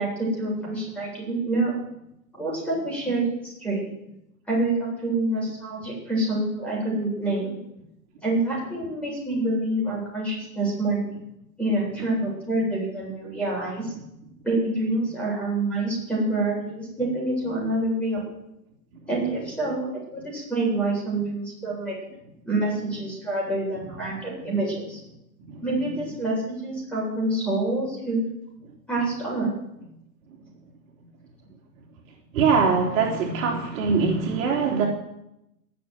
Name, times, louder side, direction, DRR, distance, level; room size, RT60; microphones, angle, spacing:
voice 1, 0.0-1.7 2.4-3.9 4.5-7.6 8.2-11.0 11.6-13.9 14.4-18.2 19.1-22.0 22.4-25.0 25.6-28.2 28.9-29.5, right 2 dB, ahead, -4 dB, 7.9 m, -27 dB
voice 2, 32.3-34.9, right 5 dB, 55° right, 0 dB, 3.5 m, -22 dB
19.0 x 7.5 x 9.6 m, 0.86 s
hypercardioid pair, 140°, 49 cm